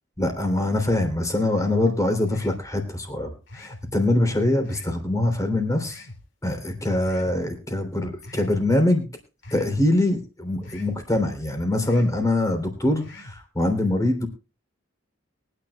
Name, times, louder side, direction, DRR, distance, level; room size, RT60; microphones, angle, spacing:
voice 1, 0.2-3.3 3.5-6.0 6.4-9.1 9.5-14.3, left 1 dB, 15° left, 5 dB, 3.3 m, -23 dB
sound 1, 2.3-2.7 3.5-3.9 4.6-5.0 5.8-6.2 7.0-7.4 8.2-8.6 9.4-9.8 10.6-11.0 11.8-12.2 13.0-13.4, left 2 dB, 70° left, 4.3 m, -43 dB
23.0 x 10.0 x 2.3 m, 0.30 s
head